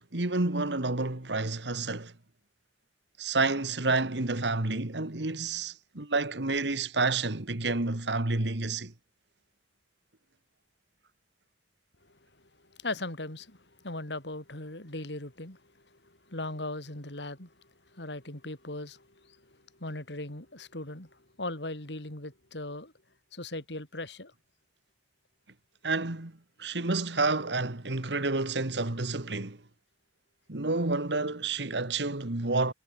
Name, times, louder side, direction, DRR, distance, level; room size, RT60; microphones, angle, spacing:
voice 1, 0.1-2.1 3.2-8.9 25.8-26.3 26.6-29.6 30.5-32.7, right 3 dB, 80° right, 2.0 m, -29 dB
voice 2, 12.8-15.6 15.9-17.5 17.9-22.9 23.3-24.3, left 2 dB, 80° left, 5.0 m, -39 dB
head